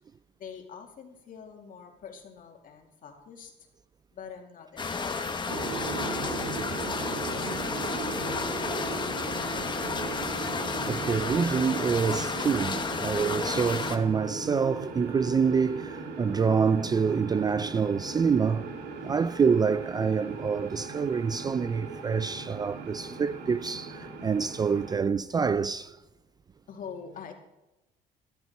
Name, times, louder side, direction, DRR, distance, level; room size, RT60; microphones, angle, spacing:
voice 1, 0.4-3.7 4.1-6.6 7.0-10.0 26.7-27.3, left 6 dB, 55° left, 2.3 m, -46 dB
sound 1, 4.8-14.0, left 4 dB, 25° left, 1.2 m, -32 dB
sound 2, 5.5-25.0, right 4 dB, 75° right, 2.3 m, -38 dB
voice 2, 10.9-18.7 19.0-26.0, right 6 dB, 25° right, 0.3 m, -26 dB
12.5 x 12.0 x 4.6 m
cardioid pair, 110°, 17 cm